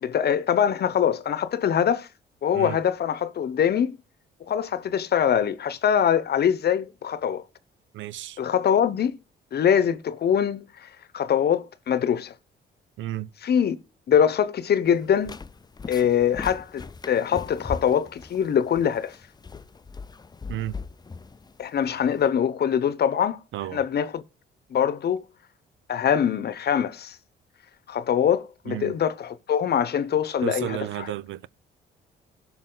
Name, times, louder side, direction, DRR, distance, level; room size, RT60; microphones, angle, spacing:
voice 1, 0.0-2.1 2.4-4.0 4.4-7.4 8.4-9.2 9.5-10.9 11.1-12.3 13.4-13.8 14.1-15.3 15.9-19.2 21.6-23.4 23.7-24.2 24.7-25.2 25.9-27.2 27.9-31.1, left 8 dB, 55° left, 0.9 m, -23 dB
voice 2, 7.9-8.4 13.0-13.3 20.5-20.8 23.5-23.8 28.7-29.0 30.4-31.5, right 13 dB, 75° right, 0.6 m, -32 dB
sound 1, 14.9-22.3, left 4 dB, 20° left, 0.5 m, -40 dB
16.5 x 6.0 x 3.9 m
cardioid pair, 90°, 20 cm